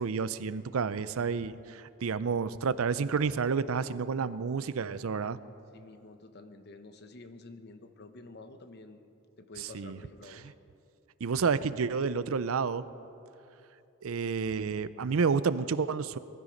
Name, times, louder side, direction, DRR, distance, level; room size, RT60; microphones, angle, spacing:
voice 1, 0.0-5.4 9.7-10.0 11.2-12.9 14.0-16.2, right 5 dB, 75° right, 15 dB, 0.5 m, -30 dB
voice 2, 5.7-9.0 9.4-10.5, left 2 dB, 50° left, 8 dB, 0.9 m, -49 dB
19.5 x 13.0 x 5.2 m, 2.7 s
head